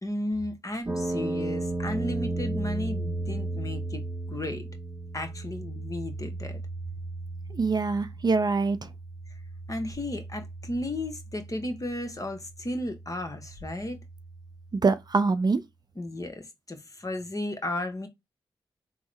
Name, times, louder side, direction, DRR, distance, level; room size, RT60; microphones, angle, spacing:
voice 1, 0.0-4.6 5.1-6.6 9.7-14.0 16.0-18.1, left 1 dB, 30° left, 0.9 m, -34 dB
sound 1, 0.9-14.9, right 2 dB, 25° right, 0.8 m, -35 dB
voice 2, 7.5-8.9 14.7-15.6, right 4 dB, 40° right, 0.4 m, -24 dB
3.5 x 2.0 x 3.2 m
supercardioid pair, 40°, 11 cm